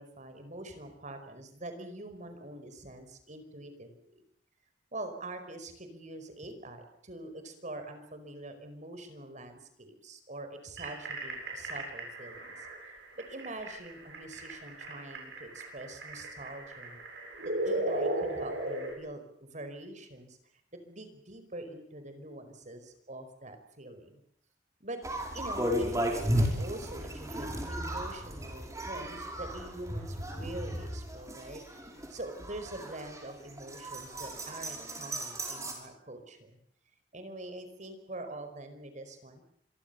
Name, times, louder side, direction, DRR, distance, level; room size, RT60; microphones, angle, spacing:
voice 1, 0.0-3.9 4.9-12.7 13.3-17.0 17.4-20.4 20.8-24.2 24.8-25.0 25.3-31.6 32.1-36.6 37.1-39.4, right 1 dB, 45° right, 8 dB, 5.0 m, -44 dB
sound 1, 10.8-18.9, right 1 dB, 70° right, 7.9 m, -36 dB
sound 2, 25.0-35.7, equal, 20° right, 5.8 m, -35 dB
26.5 x 23.0 x 7.0 m, 0.68 s
head